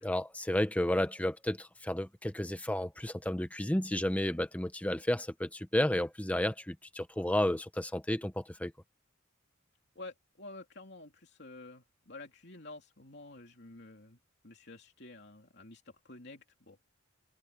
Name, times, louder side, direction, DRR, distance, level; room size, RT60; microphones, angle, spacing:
voice 1, 0.0-8.7, left 1 dB, 5° left, 0.8 m, -32 dB
voice 2, 9.9-16.8, left 2 dB, 55° left, 3.2 m, -50 dB
open air
head